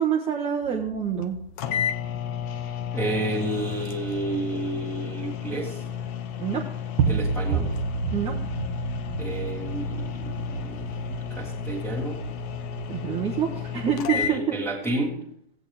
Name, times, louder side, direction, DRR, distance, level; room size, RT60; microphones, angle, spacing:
voice 1, 0.0-1.4 6.4-6.6 8.1-8.4 12.9-14.6, right 8 dB, 20° right, 0 dB, 1.0 m, -26 dB
sound 1, 0.6-6.1 6.4-6.6 7.0-14.4, right 4 dB, 40° right, 1.6 m, -32 dB
sound 2, 1.2-1.3 1.6-14.4, left 9 dB, 35° left, 0.8 m, -33 dB
voice 2, 2.9-5.8 7.1-7.7 9.2-12.2 14.1-15.2, right 2 dB, ahead, -5 dB, 1.9 m, -31 dB
16.0 x 8.3 x 3.5 m, 0.69 s
figure-of-eight pair, 110°, 31 cm